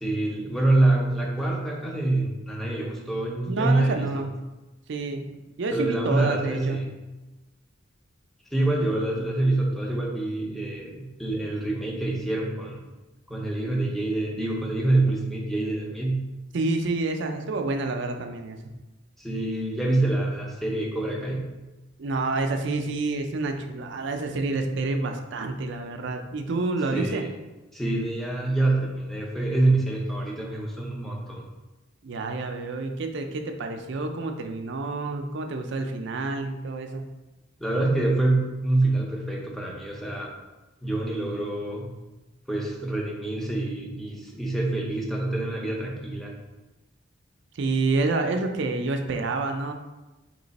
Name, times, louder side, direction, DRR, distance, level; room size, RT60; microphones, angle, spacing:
voice 1, 0.0-4.1 5.7-7.0 8.5-12.8 13.3-16.2 19.2-21.5 26.9-27.3 27.7-31.4 37.6-40.3 40.8-41.9 42.5-46.4, right 2 dB, ahead, -2 dB, 0.6 m, -26 dB
voice 2, 3.5-4.3 4.9-5.3 5.6-6.8 16.5-18.7 22.0-27.3 32.0-37.1 47.5-49.7, right 3 dB, 60° right, 5 dB, 0.4 m, -28 dB
3.2 x 3.0 x 4.0 m, 1.1 s
head